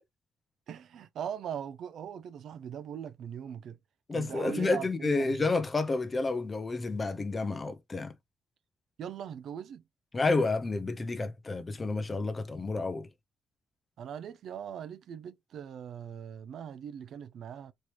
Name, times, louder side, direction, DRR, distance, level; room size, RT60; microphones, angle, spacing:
voice 1, 0.7-3.8 4.1-5.5 9.0-9.8 14.0-17.7, right 8 dB, 65° right, 0.6 m, -40 dB
voice 2, 4.1-8.1 10.1-13.1, left 3 dB, 20° left, 0.7 m, -30 dB
4.3 x 3.0 x 3.2 m
cardioid pair, 160°, 0 cm